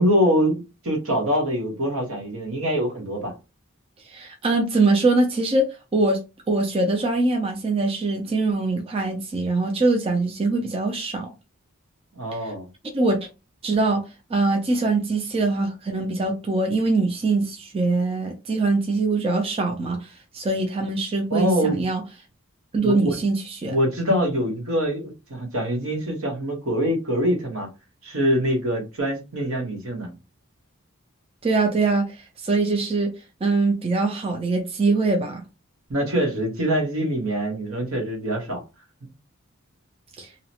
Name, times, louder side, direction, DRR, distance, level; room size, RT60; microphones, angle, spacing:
voice 1, 0.0-3.3 12.1-12.7 21.3-21.9 22.8-23.2 23.7-27.7 28.0-30.1 35.9-38.6, equal, 75° right, 1.0 m, -24 dB
voice 2, 4.1-11.3 12.3-12.5 12.9-13.3 13.6-14.0 14.3-22.0 22.7-23.8 31.4-33.1 33.4-35.4 40.2-40.3, right 3 dB, 25° right, 0.4 m, -23 dB
2.8 x 2.0 x 2.8 m
head